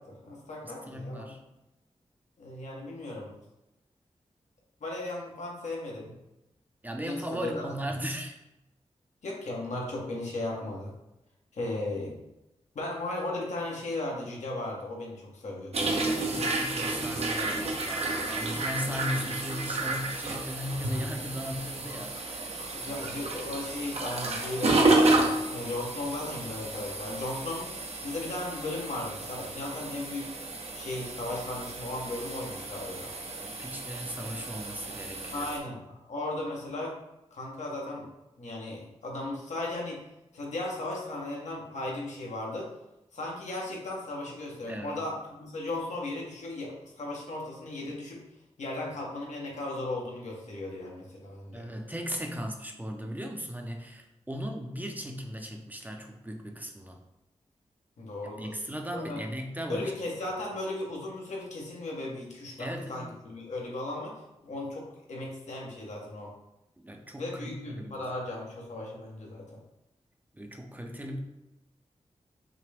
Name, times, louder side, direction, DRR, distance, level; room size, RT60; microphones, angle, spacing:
voice 1, 0.0-1.3 2.4-3.3 4.8-6.1 7.0-7.6 9.2-10.9 11.5-12.2 12.7-16.0 22.7-30.3 30.7-33.1 35.3-37.0 37.3-38.1 38.4-40.0 40.3-42.7 43.1-48.2 48.6-51.7 58.0-58.5 58.9-59.2 59.7-66.3 67.2-69.6, left 2 dB, 85° left, -2 dB, 1.2 m, -36 dB
voice 2, 0.6-1.4 6.8-8.4 16.0-22.6 22.8-23.1 33.4-35.5 44.7-45.0 51.5-57.0 58.2-59.9 62.6-63.1 66.8-68.0 70.3-71.2, equal, 15° right, 2 dB, 0.6 m, -37 dB
sound 1, 15.7-35.6, right 2 dB, 60° right, 0.7 m, -31 dB
5.8 x 2.2 x 3.4 m, 0.92 s
wide cardioid pair, 85°, 12 cm